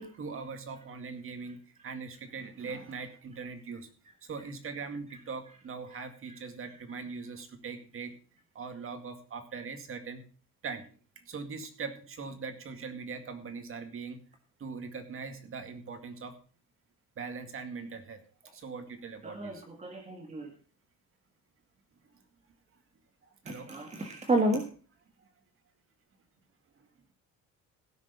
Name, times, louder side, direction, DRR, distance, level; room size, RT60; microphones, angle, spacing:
voice 1, 0.0-3.9 4.2-8.1 8.5-10.2 10.6-10.8 11.2-14.2 14.6-16.4 17.2-18.2 18.4-19.6 22.0-22.2 23.4-23.7 25.2-25.3 26.8-26.9, right 5 dB, 45° right, 7 dB, 2.2 m, -41 dB
voice 2, 19.2-20.5 23.5-24.6, right 1 dB, 20° right, 4 dB, 1.7 m, -31 dB
16.0 x 6.6 x 5.4 m, 0.39 s
cardioid pair, 115°, 30 cm